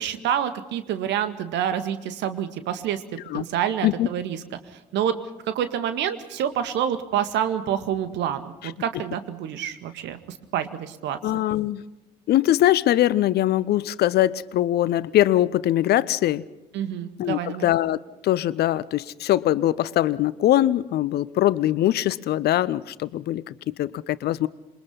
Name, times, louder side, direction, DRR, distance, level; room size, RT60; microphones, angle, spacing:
voice 1, 0.0-3.0 3.3-4.4 4.9-5.2 5.5-11.4 16.7-17.7, right 9 dB, 55° right, 10 dB, 2.0 m, -27 dB
voice 2, 11.2-11.8 12.3-16.4 17.2-18.0 18.2-24.5, left 13 dB, 50° left, 19 dB, 0.8 m, -22 dB
27.5 x 22.5 x 5.6 m, 0.99 s
figure-of-eight pair, 50°, 21 cm